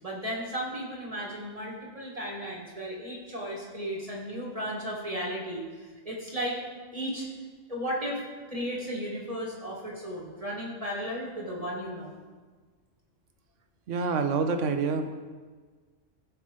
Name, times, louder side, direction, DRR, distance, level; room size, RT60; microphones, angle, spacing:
voice 1, 0.0-6.6 6.9-7.3 7.7-8.2 8.5-12.1, equal, 30° right, -4 dB, 1.6 m, -35 dB
voice 2, 13.9-15.1, right 5 dB, 75° right, 6 dB, 1.2 m, -27 dB
15.5 x 5.8 x 3.7 m, 1.5 s
omnidirectional pair, 1.3 m